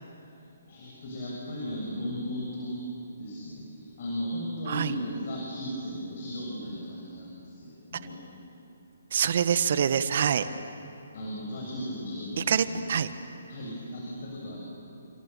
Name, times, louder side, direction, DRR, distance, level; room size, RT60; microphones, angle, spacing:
voice 1, 0.7-2.8 3.2-8.2 10.5-10.6 11.1-13.0 13.5-14.6, equal, 50° left, -4 dB, 7.2 m, -36 dB
voice 2, 9.1-10.5 12.4-13.1, right 8 dB, 55° right, 12 dB, 1.5 m, -25 dB
30.0 x 27.5 x 7.0 m, 2.6 s
figure-of-eight pair, 140°, 0 cm